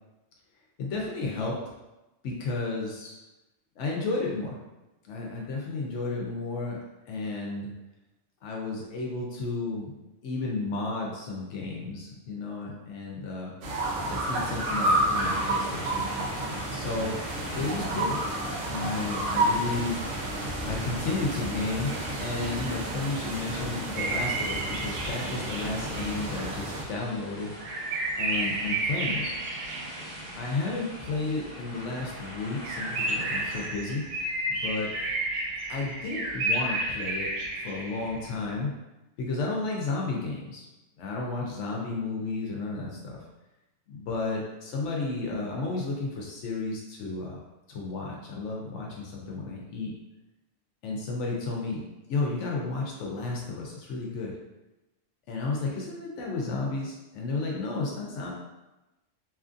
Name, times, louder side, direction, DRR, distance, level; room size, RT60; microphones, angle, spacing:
voice 1, 0.8-1.6 2.2-3.2 3.8-4.6 5.0-6.8 7.1-7.7 8.4-9.9 10.2-13.5 14.0-16.1 16.7-17.2 17.5-18.2 18.7-20.0 20.6-27.5 28.2-29.3 30.4-34.1 34.5-34.9 35.7-38.7 39.2-40.6 41.0-43.2 43.9-47.4 47.7-49.9 50.8-51.8 52.1-54.3 55.3-58.3, left 3 dB, 75° left, -2 dB, 0.9 m, -32 dB
sound 1, 13.6-26.8, right 1 dB, 85° right, 1.0 m, -30 dB
sound 2, 15.1-33.7, equal, 15° left, 1.0 m, -42 dB
sound 3, 24.0-26.8 27.0-27.1 27.6-31.6 32.0-32.1 32.3-32.4 32.6-38.3, right 2 dB, 65° right, 0.7 m, -32 dB
2.9 x 2.4 x 2.4 m, 1.0 s
omnidirectional pair, 1.2 m